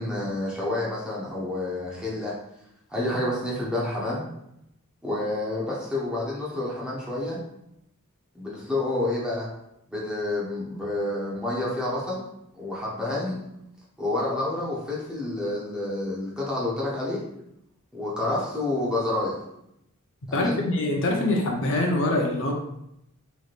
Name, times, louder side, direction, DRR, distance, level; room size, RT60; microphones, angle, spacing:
voice 1, 0.0-2.4 2.9-4.2 5.0-7.4 8.3-9.5 9.9-12.3 12.5-13.4 14.0-17.2 17.9-19.4 20.3-20.6, left 2 dB, 5° right, -7 dB, 0.8 m, -29 dB
voice 2, 20.3-22.5, left 1 dB, 60° left, 0 dB, 0.8 m, -24 dB
4.5 x 3.1 x 2.5 m, 0.79 s
head